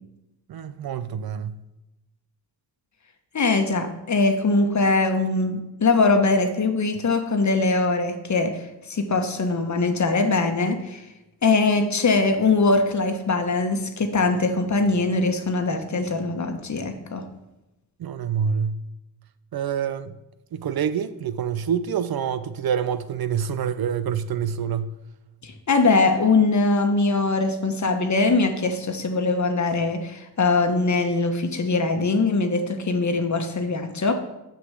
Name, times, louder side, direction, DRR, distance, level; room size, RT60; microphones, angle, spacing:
voice 1, 0.5-1.6 18.0-18.8 19.5-20.2 20.5-24.9, right 7 dB, 60° right, 0.6 m, -26 dB
voice 2, 3.3-11.0 11.4-17.2 25.4-34.1, left 3 dB, 40° left, 1.3 m, -22 dB
6.5 x 6.1 x 6.4 m
cardioid pair, 70°, 42 cm